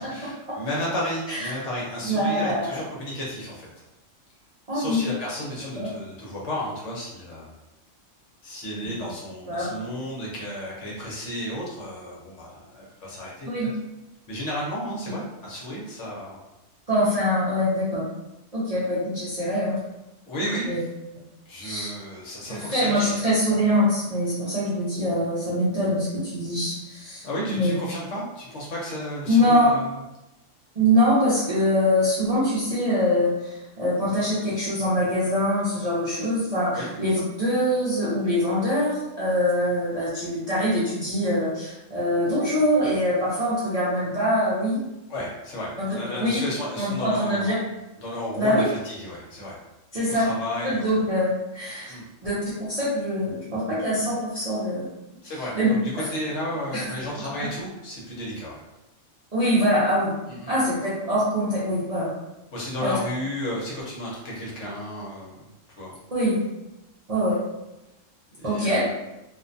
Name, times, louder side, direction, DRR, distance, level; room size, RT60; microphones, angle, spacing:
voice 1, 0.0-3.7 4.7-7.5 8.4-13.7 14.3-16.4 20.3-20.7 21.5-23.2 27.2-29.9 36.7-36.9 45.1-47.6 48.0-49.6 50.1-50.9 51.9-52.1 55.2-58.6 60.3-60.7 62.5-65.9 68.4-68.8, equal, 65° left, -4 dB, 1.0 m, -33 dB
voice 2, 2.1-2.8 4.7-5.0 5.8-5.9 9.5-9.7 13.5-13.7 16.9-18.0 18.5-19.8 20.7-20.8 21.6-21.9 22.5-27.7 29.3-29.7 30.8-44.8 45.8-45.9 46.2-46.4 46.8-47.6 48.4-48.7 49.9-50.3 50.6-51.9 52.2-54.9 55.5-55.7 56.7-56.8 59.3-60.1 60.5-62.1 62.8-63.0 66.1-66.4 67.1-67.4 68.4-68.8, equal, 45° right, -10 dB, 0.5 m, -23 dB
2.5 x 2.2 x 2.5 m, 0.95 s
omnidirectional pair, 1.4 m